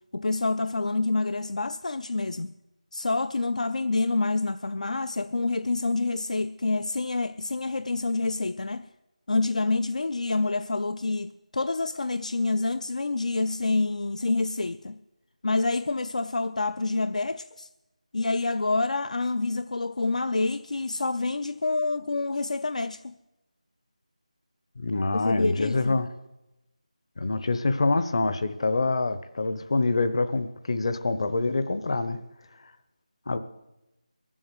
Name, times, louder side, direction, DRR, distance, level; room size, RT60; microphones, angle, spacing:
voice 1, 0.1-2.5 2.9-8.9 9.3-15.0 15.4-17.7 18.1-23.1 25.1-26.0, left 3 dB, 70° left, 0.5 m, -27 dB
voice 2, 24.8-26.1 27.2-32.2 33.3-33.4, left 3 dB, 45° left, 1.0 m, -26 dB
21.5 x 7.7 x 8.0 m
figure-of-eight pair, 170°, 4 cm